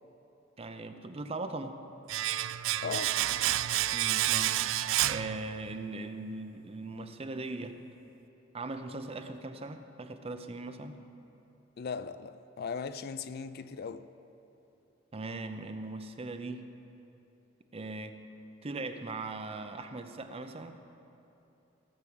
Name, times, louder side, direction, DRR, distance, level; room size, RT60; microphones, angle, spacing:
voice 1, 0.6-1.8 3.9-4.8 5.0-7.8 8.5-11.0 15.1-16.6 17.7-18.2 18.6-20.8, right 2 dB, 30° right, 0.6 m, -39 dB
Domestic sounds home sounds, 2.1-5.9 6.2-6.3, right 14 dB, 85° right, 0.3 m, -30 dB
voice 2, 2.8-3.2 11.8-14.1, left 5 dB, 55° left, 0.4 m, -38 dB
16.5 x 5.9 x 7.8 m
head